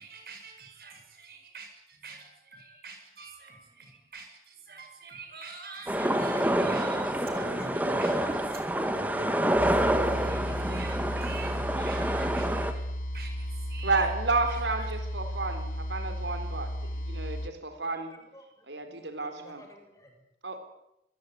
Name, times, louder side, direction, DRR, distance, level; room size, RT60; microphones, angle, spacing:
voice 1, 0.0-12.9 13.1-14.1 14.5-14.9, right 2 dB, 55° right, 5 dB, 7.9 m, -44 dB
sound 1, 5.9-12.7, right 1 dB, 10° right, 2.1 m, -27 dB
sound 2, 9.5-17.5, equal, 45° left, 1.5 m, -34 dB
voice 2, 13.8-18.1 18.7-19.6 20.4-20.6, right 3 dB, 90° right, 7 dB, 4.5 m, -31 dB
voice 3, 17.8-20.2, equal, 20° left, 3 dB, 6.8 m, -55 dB
26.0 x 21.0 x 9.7 m, 0.82 s
head